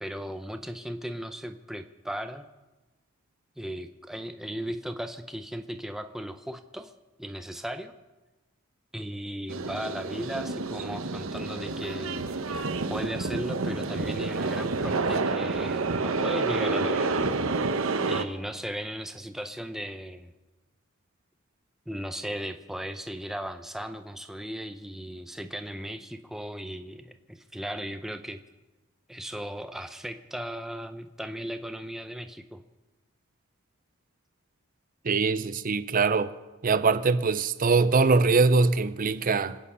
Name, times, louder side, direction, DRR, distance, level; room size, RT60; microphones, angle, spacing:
voice 1, 0.0-2.5 3.6-6.9 7.2-7.9 8.9-17.2 18.0-20.3 21.9-28.4 29.1-32.6, equal, ahead, 0.6 m, -36 dB
sound 1, 9.5-18.2, right 3 dB, 70° right, 0.9 m, -29 dB
voice 2, 35.0-36.3 36.6-39.6, right 4 dB, 40° right, 0.6 m, -22 dB
27.0 x 8.9 x 5.6 m
head